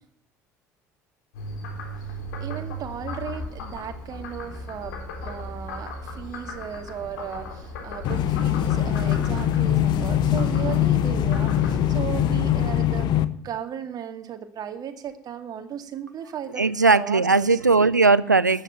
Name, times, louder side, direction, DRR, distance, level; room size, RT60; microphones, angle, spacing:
Frog, 1.3-12.5, left 1 dB, 70° left, 3.3 m, -37 dB
voice 1, 2.4-13.1 13.4-16.6 16.9-17.6, right 9 dB, 45° right, 7 dB, 2.1 m, -36 dB
sound 1, 8.0-13.2, left 10 dB, 50° left, 1.0 m, -22 dB
voice 2, 16.6-18.6, right 3 dB, 90° right, 18 dB, 0.5 m, -18 dB
13.5 x 9.0 x 9.2 m, 0.63 s
figure-of-eight pair, 60°, 9 cm